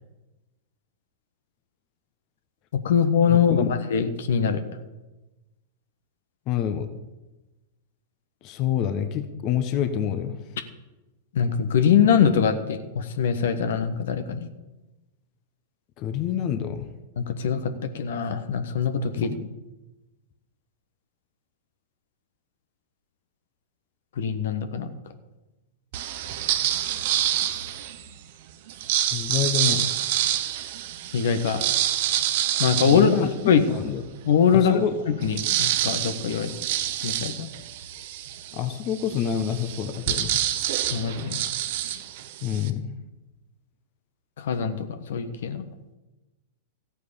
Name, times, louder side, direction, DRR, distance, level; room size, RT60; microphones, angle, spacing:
voice 1, 2.7-4.6 11.3-14.5 17.2-19.3 24.2-24.9 31.1-31.7 32.6-33.6 34.2-36.5 37.0-37.5 40.9-41.4 44.4-45.6, left 7 dB, 65° left, 9 dB, 1.4 m, -23 dB
voice 2, 3.3-3.7 6.5-6.9 8.4-10.4 16.0-16.8 19.1-19.5 29.1-29.9 32.9-33.3 33.7-34.0 34.5-35.0 38.5-40.5 42.4-42.9, left 9 dB, 40° left, 9 dB, 1.2 m, -27 dB
sound 1, 25.9-28.1 28.7-33.9 34.4-34.5 34.7-42.7, right 12 dB, 55° right, 1.1 m, -27 dB
14.5 x 9.2 x 7.0 m, 1.1 s
hypercardioid pair, 105°, 0 cm